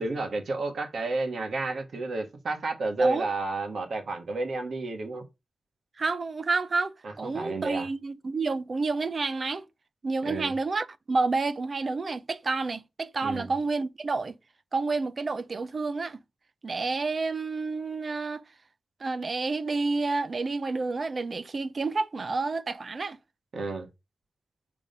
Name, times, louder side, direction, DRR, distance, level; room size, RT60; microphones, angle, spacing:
voice 1, 0.0-5.3 7.0-7.9 10.2-10.5 13.2-13.5 23.5-23.9, right 3 dB, 60° right, 1.6 m, -31 dB
voice 2, 6.0-9.6 10.0-14.4 14.7-16.2 16.6-18.4 19.0-23.2, right 3 dB, 35° right, 0.5 m, -29 dB
7.4 x 3.7 x 5.2 m
wide cardioid pair, 145°, 0 cm